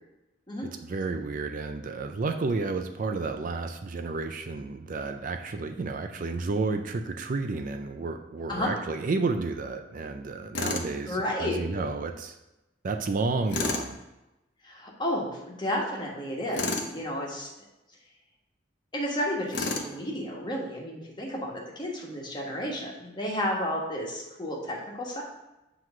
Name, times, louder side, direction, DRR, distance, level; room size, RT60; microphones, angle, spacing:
voice 1, 0.6-12.4 12.8-14.0, right 3 dB, 45° right, 6 dB, 0.4 m, -31 dB
Tools, 10.5-10.9 13.5-13.9 16.5-16.9 19.5-19.9, left 3 dB, 70° left, 0.8 m, -30 dB
voice 2, 11.0-11.6 14.6-17.5 18.9-25.2, left 1 dB, 25° left, -2 dB, 1.4 m, -32 dB
7.8 x 3.1 x 5.8 m, 0.98 s
head